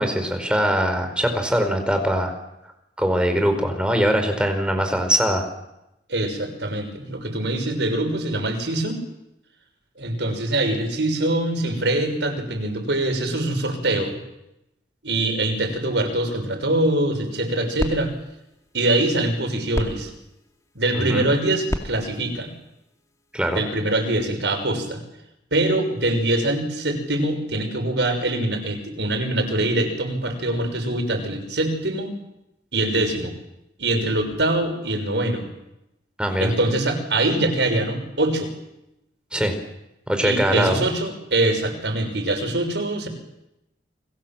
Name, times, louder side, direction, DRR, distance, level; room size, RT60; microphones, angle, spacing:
voice 1, 0.0-2.3 3.0-5.5 20.9-21.3 23.3-23.6 36.2-36.5 39.3-39.5 40.1-40.8, equal, 5° right, 5 dB, 4.8 m, -22 dB
voice 2, 6.1-9.0 10.0-14.2 15.0-18.1 18.7-20.1 20.7-22.5 23.4-25.0 25.5-32.1 32.7-33.4 33.8-35.4 36.4-38.5 40.2-43.1, right 1 dB, 90° right, 5 dB, 6.2 m, -23 dB
sound 1, 17.2-23.6, equal, 20° left, 2.3 m, -35 dB
30.0 x 22.5 x 7.5 m, 0.90 s
head